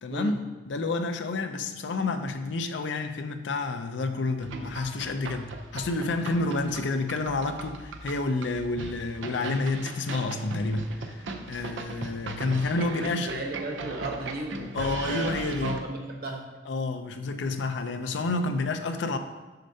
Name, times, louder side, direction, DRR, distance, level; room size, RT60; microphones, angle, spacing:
voice 1, 0.0-0.4 0.7-11.2 11.5-13.3 14.7-15.8 16.7-19.2, left 3 dB, 70° left, 7 dB, 0.5 m, -29 dB
sound 1, 4.4-15.8, right 3 dB, 80° right, 0.6 m, -38 dB
voice 2, 12.5-16.5, right 2 dB, 50° right, 1 dB, 0.9 m, -35 dB
6.5 x 6.5 x 2.7 m, 1.2 s
head